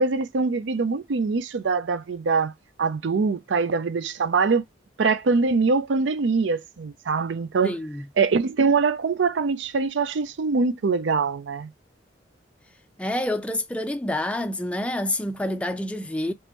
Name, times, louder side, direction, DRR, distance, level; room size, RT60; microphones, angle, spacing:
voice 1, 0.0-2.5 2.8-4.6 5.0-7.7 8.2-11.7, right 4 dB, 75° right, 0.5 m, -23 dB
voice 2, 7.6-8.1 13.0-16.3, left 1 dB, 5° left, 0.3 m, -28 dB
3.5 x 3.0 x 2.9 m
head